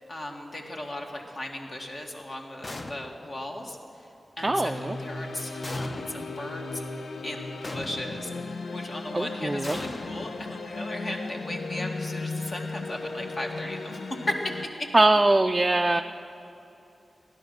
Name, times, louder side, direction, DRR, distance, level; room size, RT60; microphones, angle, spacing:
voice 1, 0.0-4.1 4.4-6.8 7.2-14.9, left 1 dB, 45° left, 1 dB, 1.8 m, -37 dB
sound 1, 2.6-3.4 5.6-6.4 7.6-8.4 9.6-10.9, left 2 dB, 30° left, 0.7 m, -39 dB
sound 2, 4.4-14.6, left 3 dB, 70° left, 0.8 m, -36 dB
voice 2, 4.4-5.0 9.1-9.8 14.9-16.0, right 2 dB, 20° right, 4 dB, 0.4 m, -22 dB
16.5 x 11.0 x 6.6 m, 2.9 s
wide cardioid pair, 125°, 0 cm